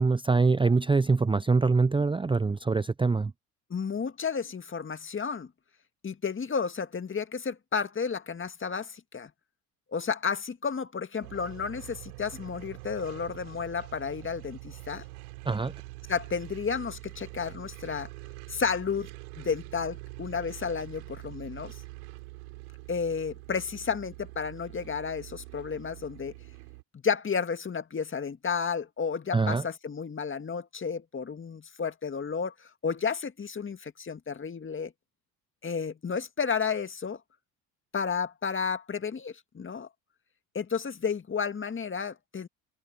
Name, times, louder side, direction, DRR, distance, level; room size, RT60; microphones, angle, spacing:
voice 1, 0.0-3.3 15.4-15.7 29.3-29.6, right 4 dB, 10° right, 0.7 m, -24 dB
voice 2, 3.7-5.5 6.0-9.3 9.9-15.0 16.1-18.1 18.5-19.1 19.4-21.8 22.9-26.3 27.0-34.9 35.6-37.2 37.9-39.9 40.5-42.5, left 6 dB, 25° left, 2.0 m, -32 dB
sound 1, 11.2-26.8, right 23 dB, 80° right, 3.7 m, -45 dB
hypercardioid pair, 65°, 44 cm